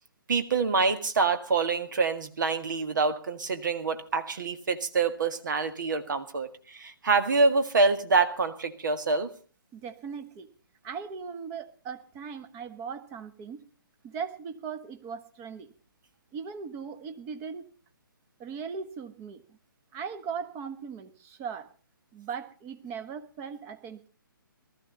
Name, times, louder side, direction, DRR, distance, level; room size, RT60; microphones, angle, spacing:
voice 1, 0.3-9.3, right 4 dB, 55° right, 9 dB, 1.9 m, -26 dB
voice 2, 9.7-10.5 10.8-13.7 14.0-15.7 16.3-17.7 18.4-19.6 19.9-21.7 22.1-24.1, right 6 dB, 20° right, 9 dB, 1.3 m, -39 dB
19.0 x 14.0 x 4.0 m, 0.38 s
figure-of-eight pair, 135°, 12 cm